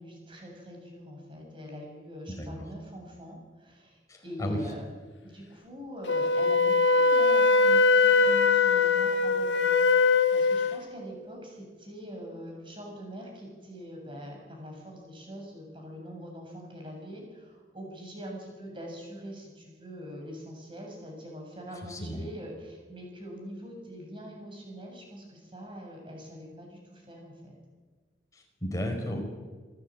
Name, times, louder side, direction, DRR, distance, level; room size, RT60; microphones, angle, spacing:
voice 1, 0.0-4.8 5.2-27.6, equal, 30° right, 0 dB, 7.4 m, -43 dB
voice 2, 4.1-4.6 21.9-22.2 28.3-29.2, left 1 dB, 20° left, 2 dB, 4.7 m, -33 dB
Wind instrument woodwind instrument, 6.1-10.8, left 4 dB, 85° left, 1.2 m, -22 dB
28.0 x 13.0 x 8.8 m, 1.4 s
head